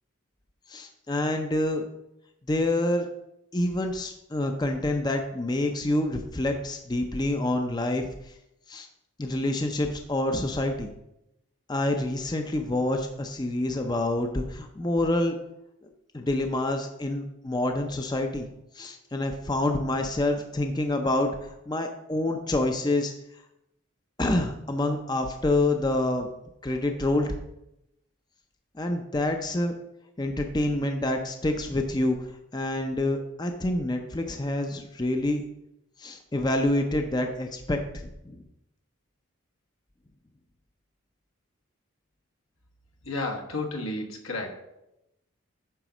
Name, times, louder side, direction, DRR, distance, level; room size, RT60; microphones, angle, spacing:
voice 1, 0.7-1.9 2.5-3.1 3.5-8.3 8.7-8.9 9.2-10.9 11.7-15.4 16.1-18.5 18.7-23.1 24.2-26.3 26.6-27.3 28.8-29.7 30.2-32.3 32.5-35.4 36.0-38.4, left 1 dB, 20° left, 5 dB, 0.5 m, -27 dB
voice 2, 43.0-44.6, left 2 dB, 80° left, 2 dB, 1.3 m, -32 dB
9.1 x 3.9 x 6.0 m, 0.86 s
head